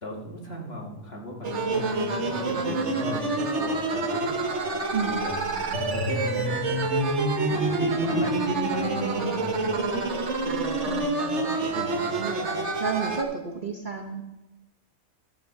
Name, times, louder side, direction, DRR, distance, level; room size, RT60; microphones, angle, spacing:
voice 1, 0.0-4.3 5.0-6.8 7.5-8.3 8.6-9.9 11.6-12.2, left 1 dB, 45° left, 0 dB, 2.2 m, -38 dB
sound 1, 1.4-13.2, right 2 dB, 55° right, 1.5 m, -27 dB
voice 2, 2.5-2.9 4.9-5.2 8.1-8.5 9.0-9.4 10.8-14.2, right 5 dB, 40° right, 2 dB, 1.0 m, -33 dB
13.0 x 6.5 x 5.9 m, 1.0 s
omnidirectional pair, 1.4 m